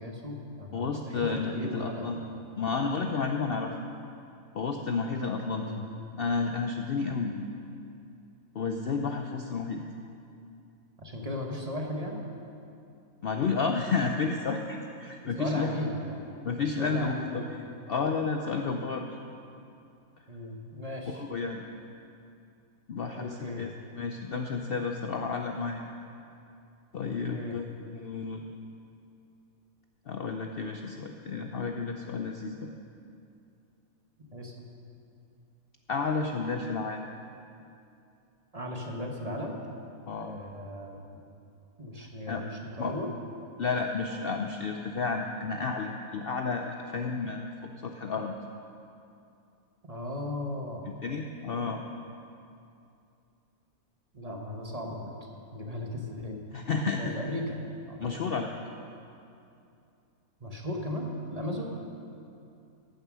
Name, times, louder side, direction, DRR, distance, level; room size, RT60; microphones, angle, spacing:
voice 1, 0.0-2.2 5.5-5.8 11.0-12.3 15.4-17.7 20.3-21.2 23.1-23.7 27.3-27.5 34.3-34.7 38.5-39.6 40.2-41.2 41.8-42.5 42.8-43.1 49.8-50.9 54.1-55.1 55.5-56.4 57.0-58.0 60.4-61.7, left 1 dB, 30° right, 1 dB, 1.1 m, -36 dB
voice 2, 0.7-2.2 2.6-3.7 4.5-5.7 6.2-7.5 8.5-9.8 13.2-15.8 16.4-19.1 21.1-21.6 22.9-23.7 24.0-25.8 26.9-27.7 27.9-28.4 30.1-32.7 35.9-37.1 40.1-40.3 42.0-42.4 42.8-42.9 43.6-48.3 51.0-51.8 56.5-57.1 58.0-58.5, left 4 dB, 60° left, 4 dB, 0.6 m, -31 dB
14.5 x 7.3 x 6.1 m, 2.6 s
omnidirectional pair, 1.5 m